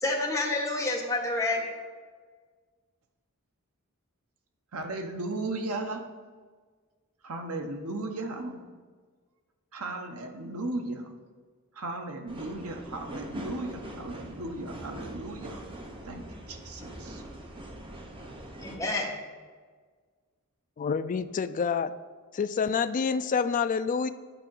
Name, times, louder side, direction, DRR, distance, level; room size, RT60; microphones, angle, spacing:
voice 1, 0.0-1.7 18.5-19.1, left 2 dB, 15° left, -2 dB, 1.3 m, -29 dB
voice 2, 4.7-6.0 7.2-8.6 9.7-11.1 11.7-15.6 16.0-17.2, right 2 dB, 70° right, 5 dB, 0.9 m, -36 dB
sound 1, 12.3-18.8, right 1 dB, 25° right, 0.9 m, -42 dB
voice 3, 20.8-21.9 22.3-24.1, left 6 dB, 35° left, 12 dB, 0.3 m, -27 dB
9.0 x 3.8 x 6.1 m, 1.5 s
head